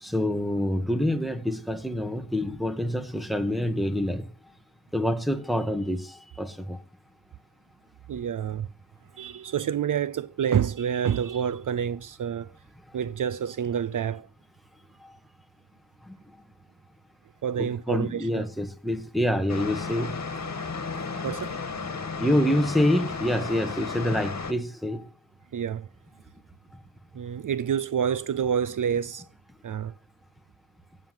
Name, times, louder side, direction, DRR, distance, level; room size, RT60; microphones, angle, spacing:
voice 1, 0.0-4.3 4.9-6.8 15.0-15.1 16.1-16.2 17.6-20.5 22.2-25.1, equal, ahead, 1.9 m, -27 dB
voice 2, 8.1-8.7 9.2-12.5 12.9-14.3 17.4-18.5 21.2-21.6 25.5-25.9 27.1-29.2 29.6-29.9, right 8 dB, 60° right, 0.6 m, -28 dB
sound 1, 19.5-24.5, left 4 dB, 50° left, 2.5 m, -33 dB
16.5 x 7.4 x 7.9 m
cardioid pair, 80°, 36 cm